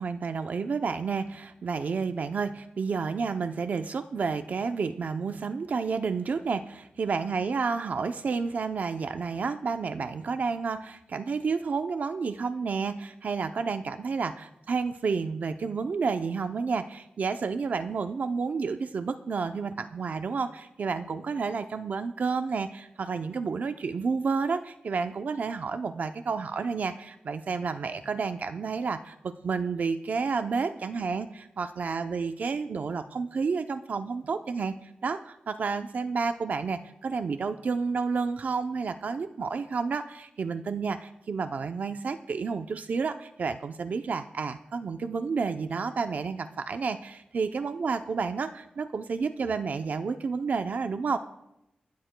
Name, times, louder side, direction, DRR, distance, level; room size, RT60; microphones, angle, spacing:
voice 1, 0.0-51.2, right 5 dB, 60° right, 9 dB, 0.5 m, -30 dB
28.0 x 12.5 x 2.2 m, 0.86 s
wide cardioid pair, 125°, 3 cm